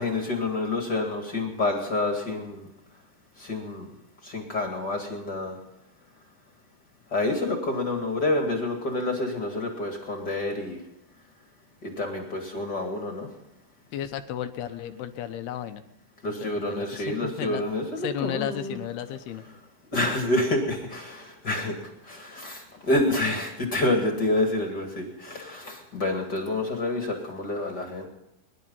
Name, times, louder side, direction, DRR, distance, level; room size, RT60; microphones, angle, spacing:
voice 1, 0.0-2.7 3.4-3.9 4.2-5.6 7.1-10.8 11.8-13.3 16.2-18.8 19.9-28.1, left 2 dB, 35° left, 4 dB, 2.0 m, -28 dB
voice 2, 13.9-15.8 16.4-17.6 18.0-19.4, left 10 dB, 80° left, 9 dB, 2.9 m, -33 dB
22.5 x 11.5 x 5.6 m, 0.84 s
omnidirectional pair, 4.7 m